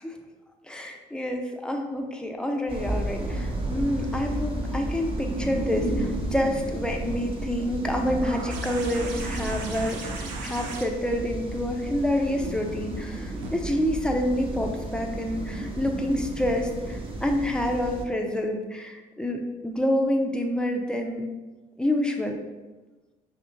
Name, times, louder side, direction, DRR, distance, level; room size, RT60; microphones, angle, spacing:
voice 1, 0.7-21.2 21.8-22.4, left 1 dB, 5° left, 2 dB, 0.6 m, -28 dB
sound 1, 2.7-18.0, right 1 dB, 25° right, 0.8 m, -32 dB
sound 2, 8.2-13.5 14.9-15.0, right 4 dB, 90° right, 0.5 m, -39 dB
5.6 x 2.8 x 2.5 m, 1.2 s
hypercardioid pair, 50°, 21 cm